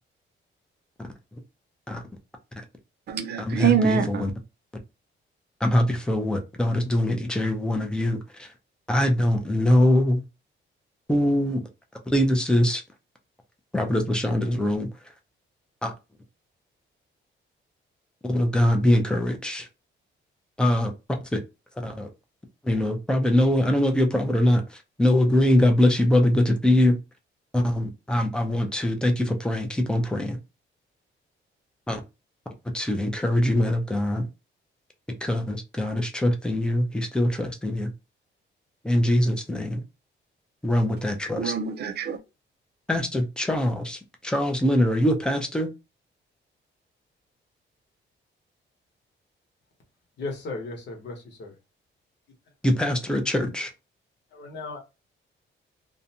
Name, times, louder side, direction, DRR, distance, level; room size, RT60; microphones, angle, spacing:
voice 1, 1.0-1.4 1.9-2.0 3.5-4.3 5.6-8.5 8.9-10.2 11.1-11.6 12.1-12.8 13.7-14.9 15.8-15.9 18.3-19.7 20.6-20.9 21.3-21.4 21.8-22.1 22.6-27.0 27.5-30.4 31.9-32.0 32.7-34.3 35.2-37.9 38.8-39.8 40.6-41.5 42.9-45.7 52.6-53.7, left 1 dB, 5° left, 0.4 m, -23 dB
voice 2, 3.1-4.3 41.4-42.2, right 7 dB, 55° right, 0.5 m, -24 dB
voice 3, 50.2-51.5 54.3-54.8, left 3 dB, 60° left, 1.0 m, -36 dB
2.6 x 2.2 x 2.7 m
wide cardioid pair, 170°, 21 cm